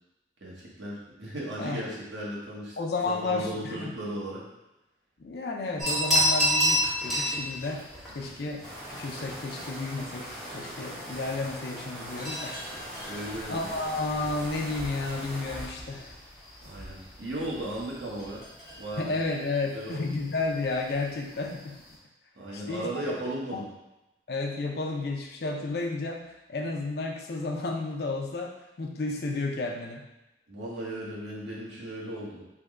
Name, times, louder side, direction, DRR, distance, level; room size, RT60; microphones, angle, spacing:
voice 1, 0.4-2.7 3.0-4.5 13.1-13.7 16.6-18.5 18.8-19.2 19.7-20.1 22.3-23.7 30.5-32.4, right 1 dB, 85° right, -5 dB, 1.0 m, -36 dB
voice 2, 2.8-3.9 5.2-7.8 8.1-8.6 9.0-10.3 10.5-12.6 13.5-16.2 19.0-21.7 22.5-22.9 23.5-23.6 24.3-26.2 26.5-30.0, left 3 dB, 60° left, 1 dB, 0.4 m, -32 dB
sound 1, 5.8-22.0, equal, ahead, 1.0 m, -33 dB
sound 2, 8.6-15.6, equal, 30° right, 1.0 m, -41 dB
3.4 x 2.2 x 3.6 m, 0.95 s
head